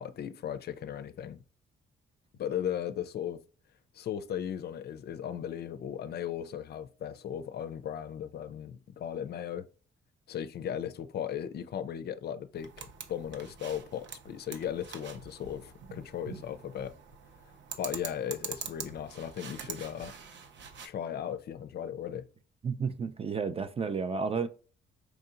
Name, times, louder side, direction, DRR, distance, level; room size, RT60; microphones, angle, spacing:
voice 1, 0.0-1.4 2.4-3.4 3.9-9.7 10.3-16.9 17.8-20.1 20.8-22.3, left 9 dB, 55° left, 0.4 m, -37 dB
sound 1, 12.5-20.9, right 6 dB, 65° right, 0.7 m, -44 dB
voice 2, 22.6-24.5, right 5 dB, 30° right, 0.4 m, -31 dB
4.7 x 2.7 x 2.5 m
cardioid pair, 90°, 20 cm